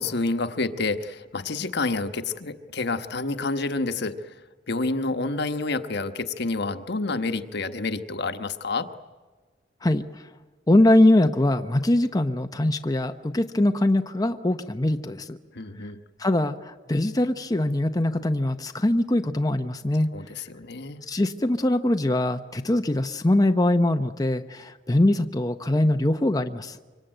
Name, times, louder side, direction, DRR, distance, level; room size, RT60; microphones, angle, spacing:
voice 1, 0.0-4.2 4.7-8.9 15.5-16.0 20.1-21.0, left 3 dB, 60° left, 9 dB, 1.3 m, -28 dB
voice 2, 10.7-15.4 16.2-20.1 21.1-26.8, left 1 dB, 20° left, 7 dB, 0.8 m, -22 dB
25.0 x 24.5 x 9.0 m, 1.4 s
head